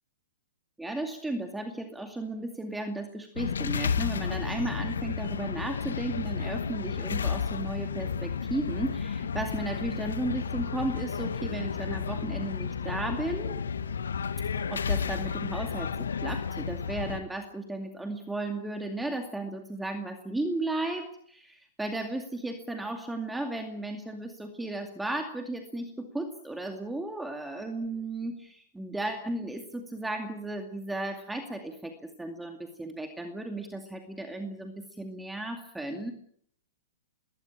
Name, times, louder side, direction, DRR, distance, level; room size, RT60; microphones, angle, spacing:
voice 1, 0.8-13.6 14.7-36.1, right 2 dB, 5° right, 5 dB, 2.3 m, -35 dB
sound 1, 3.4-17.2, left 6 dB, 80° left, 1.8 m, -32 dB
21.5 x 18.5 x 8.9 m, 0.63 s
hypercardioid pair, 125°, 0 cm